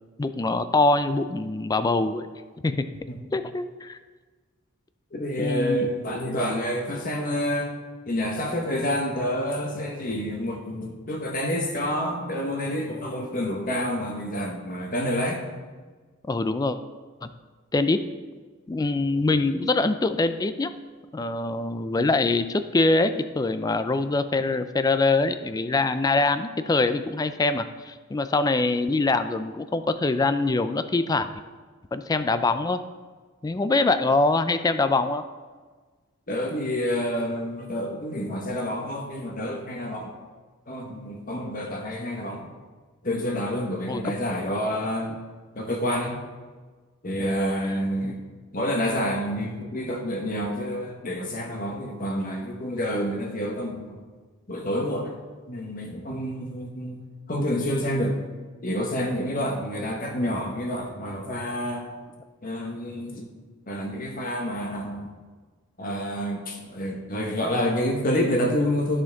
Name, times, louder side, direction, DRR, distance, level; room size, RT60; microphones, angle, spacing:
voice 1, 0.2-2.3 2.6-2.8 3.3-4.0 5.4-5.9 16.3-16.8 17.2-17.3 17.7-18.0 18.7-20.7 21.1-31.3 31.9-32.8 33.4-35.2 41.4-41.5 43.9-44.1 47.2-47.3, left 3 dB, 20° left, 11 dB, 0.3 m, -24 dB
voice 2, 5.1-7.7 8.1-15.4 36.3-40.1 40.7-42.5 43.0-45.2 45.5-46.2 47.0-48.2 48.5-54.0 54.5-55.2 55.5-57.0 57.3-58.2 58.6-61.9 62.4-63.3 63.7-65.1 65.8-69.0, equal, 40° left, 2 dB, 1.2 m, -28 dB
13.0 x 4.5 x 3.5 m, 1.4 s
head